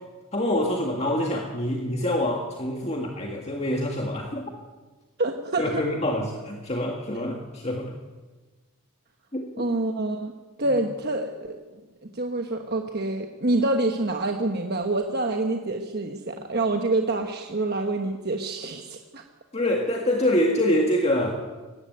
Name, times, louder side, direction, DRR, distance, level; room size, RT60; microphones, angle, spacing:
voice 1, 0.3-4.5 5.6-7.9 9.3-9.4 19.5-21.3, left 1 dB, 30° left, 1 dB, 1.8 m, -25 dB
voice 2, 5.2-5.8 9.6-10.3 10.6-19.2, right 2 dB, 45° right, 3 dB, 1.2 m, -27 dB
19.0 x 15.5 x 9.3 m, 1.2 s
head